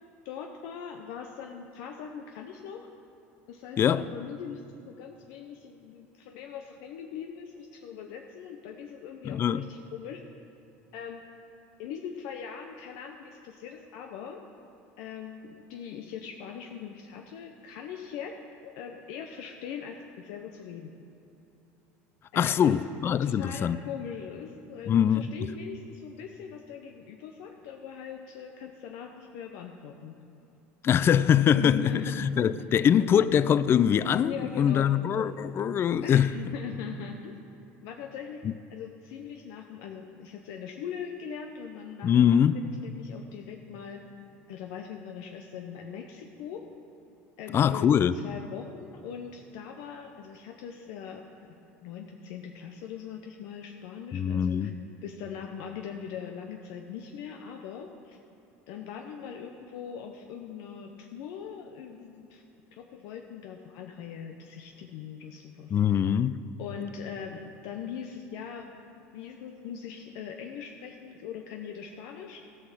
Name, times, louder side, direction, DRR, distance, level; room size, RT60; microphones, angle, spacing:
voice 1, 0.2-2.9 3.5-10.2 10.9-11.2 11.8-14.4 15.0-18.3 18.6-20.9 22.3-22.8 23.2-30.1 31.5-32.3 34.2-34.9 36.0-37.3 37.8-38.4 38.7-44.0 44.5-46.6 47.4-51.6 51.8-54.7 55.0-58.2 58.7-62.4 62.7-66.0 66.6-68.8 69.1-72.4, left 7 dB, 70° left, 0.7 m, -41 dB
voice 2, 3.8-4.1 9.2-9.7 22.4-23.8 24.9-25.3 30.8-36.3 38.4-38.5 42.0-42.6 47.5-48.2 54.1-54.7 65.7-66.4, left 8 dB, 35° left, 0.4 m, -23 dB
14.0 x 5.7 x 6.2 m
hypercardioid pair, 90°, 7 cm